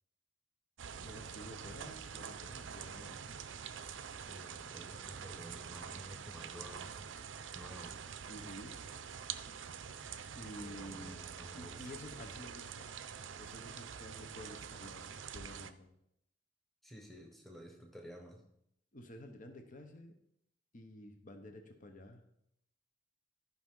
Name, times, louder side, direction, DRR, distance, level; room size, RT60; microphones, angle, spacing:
sound 1, 0.8-15.7, right 7 dB, 80° right, 0.6 m, -46 dB
voice 1, 1.0-3.2 8.3-8.8 9.5-9.6 10.3-11.3 11.5-12.9 13.4-15.9 18.9-20.1 20.7-22.2, left 1 dB, 45° left, 5 dB, 1.1 m, -51 dB
voice 2, 4.3-7.0 7.5-8.0 10.6-11.9 16.8-18.4, equal, ahead, 1 dB, 1.2 m, -52 dB
13.0 x 5.7 x 3.8 m, 0.76 s
head